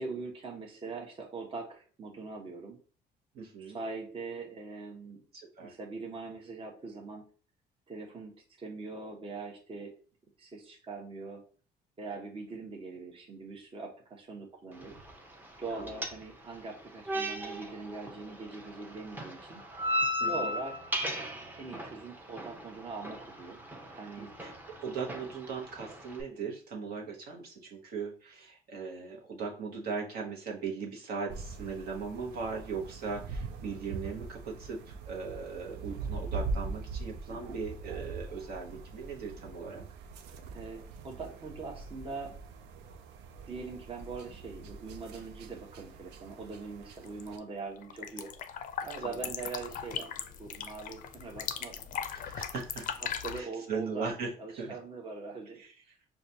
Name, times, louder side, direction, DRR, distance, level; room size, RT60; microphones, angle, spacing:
voice 1, 0.0-2.8 3.6-5.2 5.6-7.2 7.9-8.3 8.6-9.9 10.4-11.4 12.0-15.0 15.6-19.6 20.2-20.7 21.5-23.6 24.0-24.3 37.3-37.6 40.5-42.3 43.5-48.3 48.8-50.1 50.4-51.8 53.0-54.1 54.4-55.6, right 3 dB, 30° right, 0 dB, 0.9 m, -42 dB
voice 2, 3.3-3.8 5.3-5.7 15.7-15.9 20.2-20.5 24.2-39.8 49.2-49.3 52.1-52.9 53.3-54.3 54.6-54.7 55.6-55.7, right 5 dB, 65° right, -1 dB, 1.0 m, -39 dB
sound 1, 14.7-26.2, equal, 10° right, 0.6 m, -38 dB
sound 2, 31.3-47.4, right 4 dB, 85° right, 0.4 m, -42 dB
sound 3, 47.0-47.4 47.7-53.4, left 8 dB, 50° left, 0.4 m, -39 dB
4.8 x 2.3 x 2.7 m, 0.39 s
cardioid pair, 110°, 17 cm